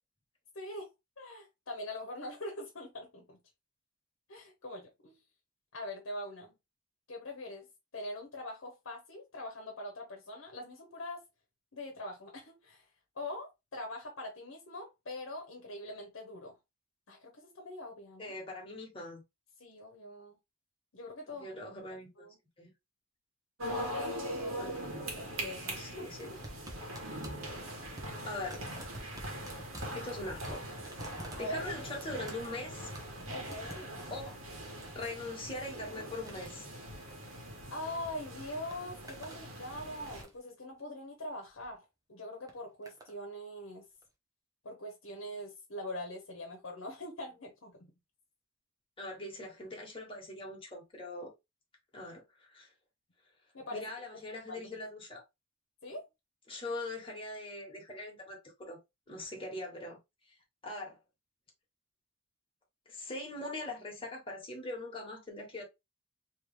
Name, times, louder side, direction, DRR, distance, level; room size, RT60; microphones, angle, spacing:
voice 1, 0.5-0.9 1.2-3.4 4.3-5.2 5.7-6.5 7.1-7.7 7.9-11.2 11.7-12.9 13.1-16.5 17.1-18.4 19.6-20.4 20.9-21.6 22.2-22.4 23.7-26.4 31.4-31.6 33.3-34.0 37.7-43.9 44.6-47.9 53.5-53.8 54.5-54.7 55.8-56.0, left 1 dB, 75° left, 1.0 m, -43 dB
voice 2, 18.2-19.2 21.3-22.3 22.6-22.7 24.6-24.8 25.8-26.3 28.2-28.7 29.9-30.7 30.9-32.9 34.1-34.4 34.9-36.7 49.0-51.3 51.9-52.7 53.7-55.2 56.5-58.8 59.1-60.0 60.2-60.3 60.6-61.0 62.9-65.6, left 2 dB, 25° left, 1.5 m, -42 dB
sound 1, 23.6-40.2, right 1 dB, 90° right, 1.5 m, -42 dB
sound 2, 26.2-38.1 38.4-39.4 39.8-40.5 41.4-41.7 42.5-43.1 44.0-44.1, right 1 dB, 20° right, 0.9 m, -50 dB
3.3 x 3.1 x 3.3 m
head